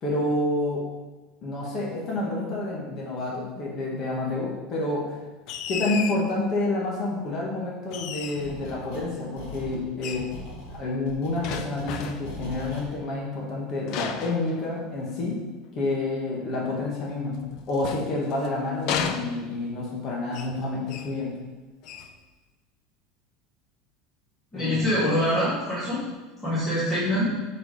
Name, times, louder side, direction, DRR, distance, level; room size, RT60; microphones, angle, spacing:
voice 1, 0.0-0.9 1.4-5.1 5.7-10.2 10.7-15.4 15.7-17.4 17.7-21.4 24.5-24.8, left 2 dB, 30° left, -4 dB, 1.8 m, -29 dB
sound 1, 5.5-6.3 7.9-8.6 10.0-10.3 11.4-12.4 13.9-15.1 17.3-18.5 18.9-19.8 20.3-20.6 20.9-21.2 21.8-22.2, left 7 dB, 45° left, 0.6 m, -33 dB
sound 2, 8.4-9.1 9.4-12.9, equal, 70° left, 2.5 m, -40 dB
voice 2, 24.5-26.0 26.4-27.3, equal, 10° left, -10 dB, 2.8 m, -24 dB
9.2 x 5.0 x 5.1 m, 1.2 s
cardioid pair, 170°, 0 cm